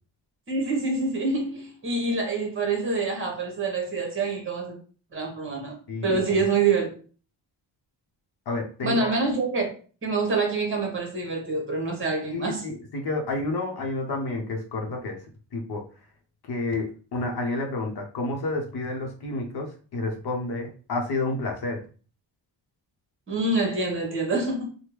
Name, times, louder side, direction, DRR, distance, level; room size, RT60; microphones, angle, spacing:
voice 1, 0.5-4.8 5.1-5.7 6.0-6.9 8.8-9.7 10.0-12.6 23.3-24.8, right 3 dB, 25° right, 1.0 m, -26 dB
voice 2, 5.9-6.4 8.5-9.1 12.3-15.2 15.5-15.8 16.5-21.8, left 2 dB, 55° left, 0.8 m, -30 dB
3.4 x 2.2 x 3.0 m
wide cardioid pair, 165°, 45 cm